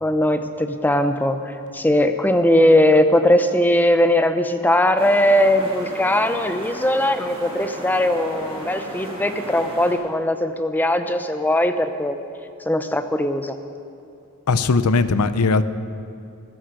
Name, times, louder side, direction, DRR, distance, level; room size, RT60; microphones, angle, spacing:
voice 1, 0.0-12.2 12.7-13.6, left 1 dB, 10° left, 8 dB, 0.6 m, -19 dB
sound 1, 5.0-10.0, equal, 25° right, 2.4 m, -35 dB
voice 2, 14.5-15.6, left 4 dB, 85° left, 13 dB, 0.6 m, -18 dB
13.5 x 11.5 x 6.5 m, 2.7 s
head